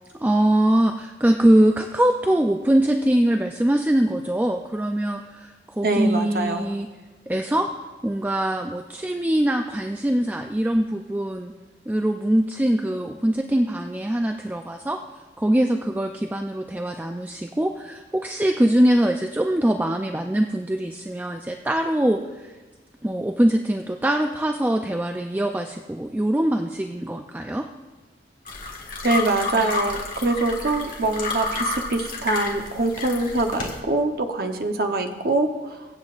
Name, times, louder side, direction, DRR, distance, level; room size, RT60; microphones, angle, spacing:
voice 1, 0.1-6.9 7.3-7.7 8.0-11.5 11.9-15.0 15.4-22.5 23.0-27.7, right 1 dB, 10° right, 4 dB, 0.3 m, -22 dB
voice 2, 5.8-6.7 29.0-35.9, right 2 dB, 55° right, 5 dB, 0.8 m, -24 dB
sound 1, 28.5-33.8, left 3 dB, 50° left, 1.7 m, -30 dB
23.5 x 8.0 x 2.5 m, 1.3 s
head